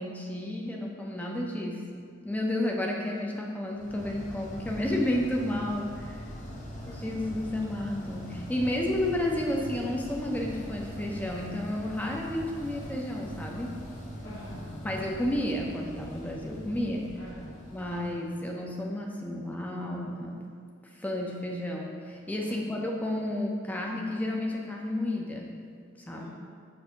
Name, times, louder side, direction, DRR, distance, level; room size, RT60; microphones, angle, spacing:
voice 1, 0.0-6.2 6.9-13.8 14.8-17.1 17.7-20.5 20.9-25.6 26.1-26.3, left 1 dB, 10° left, -1 dB, 0.6 m, -31 dB
sound 1, 3.7-18.8, equal, 40° left, 1.0 m, -42 dB
voice 2, 14.2-14.8 17.1-17.6 22.5-22.9 26.1-26.3, equal, 60° left, -11 dB, 1.3 m, -47 dB
6.8 x 2.7 x 5.7 m, 2.1 s
head